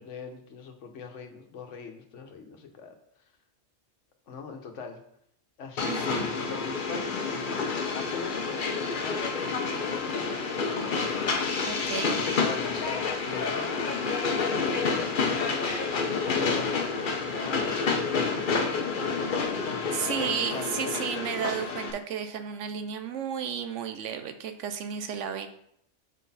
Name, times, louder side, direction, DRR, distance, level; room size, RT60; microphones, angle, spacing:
voice 1, 0.0-3.0 4.3-5.0 5.6-10.8 12.4-13.9 14.4-19.3 19.6-20.8, left 5 dB, 80° left, 4 dB, 1.3 m, -41 dB
Train, 5.8-21.9, left 4 dB, 50° left, 0.8 m, -29 dB
voice 2, 5.9-6.3 11.6-12.2 19.9-25.5, right 8 dB, 90° right, 9 dB, 1.0 m, -33 dB
5.9 x 4.9 x 4.1 m, 0.70 s
omnidirectional pair, 1.2 m